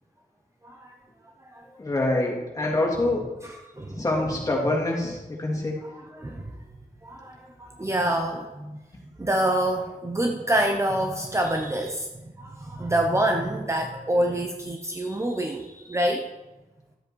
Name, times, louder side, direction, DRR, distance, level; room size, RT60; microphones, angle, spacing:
voice 1, 0.6-1.0 1.5-1.7 3.4-4.0 5.8-6.6 7.0-8.8 9.2-16.3, right 1 dB, 20° right, 3 dB, 0.9 m, -27 dB
voice 2, 1.8-3.3 3.9-5.8, left 2 dB, 25° left, -2 dB, 2.9 m, -25 dB
13.0 x 7.9 x 4.7 m, 1.1 s
wide cardioid pair, 135°, 14 cm